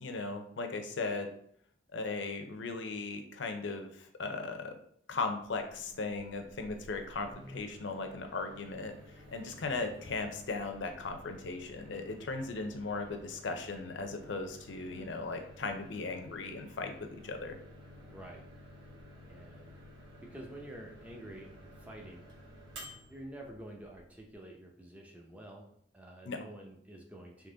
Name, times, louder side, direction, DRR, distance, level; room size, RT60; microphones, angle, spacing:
voice 1, 0.0-1.3 1.9-4.7 5.1-9.0 9.3-17.6 26.2-26.4, left 3 dB, 75° left, 6 dB, 0.6 m, -37 dB
Microwave oven, 5.6-24.3, equal, 75° right, 1.2 m, -53 dB
voice 2, 9.6-9.9 18.1-18.4 19.3-19.8 20.3-22.2 23.1-27.5, right 1 dB, 10° right, 0 dB, 0.6 m, -49 dB
3.7 x 3.0 x 3.8 m, 0.66 s
head